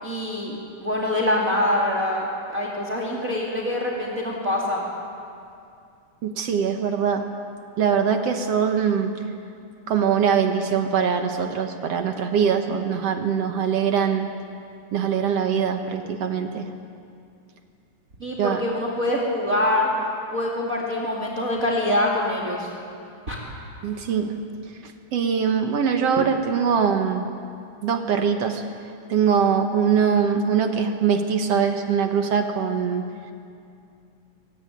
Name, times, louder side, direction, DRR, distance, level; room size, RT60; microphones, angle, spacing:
voice 1, 0.0-2.2 2.5-4.8 18.2-19.9 20.3-22.7 23.3-23.4, left 1 dB, 25° right, -2 dB, 2.8 m, -24 dB
voice 2, 6.2-7.2 7.8-9.1 9.9-14.3 14.9-16.7 18.4-18.6 23.8-24.4 24.8-27.3 27.8-28.6 29.1-33.1, right 7 dB, 60° right, 6 dB, 2.0 m, -22 dB
23.0 x 19.0 x 9.4 m, 2.5 s
omnidirectional pair, 3.6 m